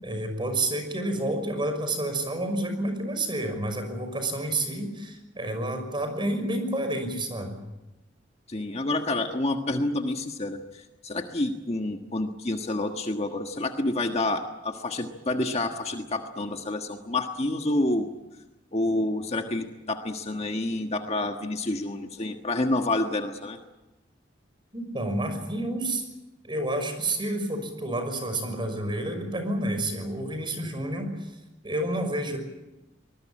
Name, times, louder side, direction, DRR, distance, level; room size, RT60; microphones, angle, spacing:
voice 1, 0.0-7.6 24.7-26.0 26.4-31.4 31.6-32.4, right 1 dB, 25° right, 6 dB, 5.9 m, -29 dB
voice 2, 8.5-18.1 18.7-23.6, left 2 dB, 35° left, 4 dB, 1.5 m, -28 dB
24.5 x 20.5 x 8.9 m, 1.0 s
head